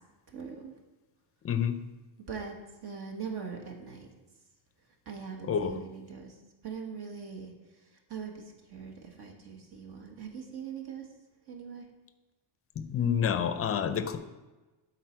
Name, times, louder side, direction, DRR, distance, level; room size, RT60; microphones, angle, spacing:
voice 1, 0.3-0.7 2.3-2.5 2.8-4.1 5.0-6.4 6.6-7.5 8.1-11.1 11.5-11.8, right 6 dB, 50° right, 2 dB, 1.5 m, -41 dB
voice 2, 1.4-1.8 5.5-5.8 12.8-14.2, left 8 dB, 30° left, 10 dB, 0.5 m, -28 dB
12.5 x 4.2 x 4.4 m, 1.1 s
cardioid pair, 140°, 48 cm